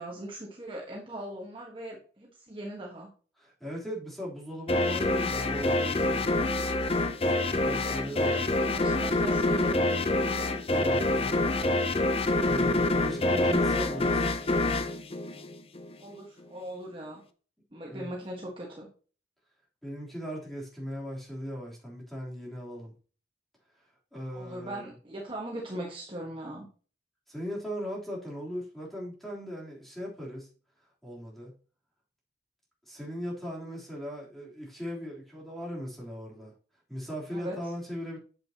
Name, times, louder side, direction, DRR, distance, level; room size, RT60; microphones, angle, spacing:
voice 1, 0.0-3.1 7.8-9.8 16.0-17.2 17.7-18.9 24.3-26.7 37.3-37.6, right 1 dB, 30° right, -2 dB, 1.5 m, -40 dB
voice 2, 3.4-6.5 7.5-8.5 10.7-11.4 12.4-14.4 17.9-18.1 19.8-22.9 23.8-24.9 27.3-30.5 31.0-31.5 32.9-36.5 36.9-38.2, equal, ahead, -5 dB, 3.5 m, -38 dB
sound 1, 4.7-16.0, left 2 dB, 30° left, 0.7 m, -26 dB
8.9 x 7.7 x 2.9 m, 0.39 s
head